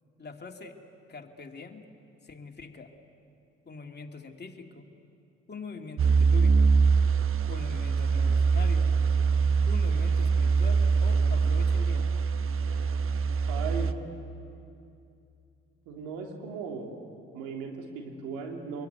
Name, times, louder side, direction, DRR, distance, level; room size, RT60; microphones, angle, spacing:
voice 1, 0.2-0.8 1.1-1.9 2.2-2.9 3.7-4.9 5.5-6.7 7.5-8.9 9.7-12.1, left 4 dB, 35° left, 3 dB, 2.7 m, -43 dB
sound 1, 6.0-13.9, right 5 dB, 45° right, 1.1 m, -23 dB
voice 2, 13.5-13.9 15.8-16.9 17.3-18.9, right 5 dB, 75° right, 1 dB, 3.4 m, -37 dB
26.0 x 22.0 x 9.4 m, 2.5 s
hypercardioid pair, 55°, 31 cm